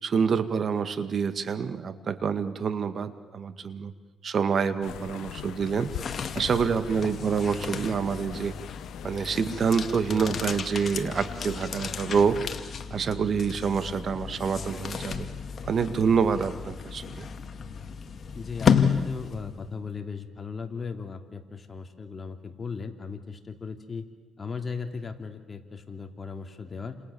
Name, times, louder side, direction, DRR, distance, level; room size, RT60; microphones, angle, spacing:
voice 1, 0.0-3.9 4.2-5.9 6.3-8.5 9.0-12.4 12.9-15.3 15.6-17.3, right 6 dB, 50° right, 11 dB, 2.0 m, -27 dB
sound 1, 4.8-12.6, left 11 dB, 80° left, 1.1 m, -42 dB
sound 2, 5.7-19.7, left 6 dB, 50° left, 2.1 m, -32 dB
voice 2, 18.3-24.1 24.4-27.0, left 5 dB, 30° left, 5 dB, 3.0 m, -37 dB
30.0 x 27.5 x 7.1 m, 1.3 s
cardioid pair, 90°, 0 cm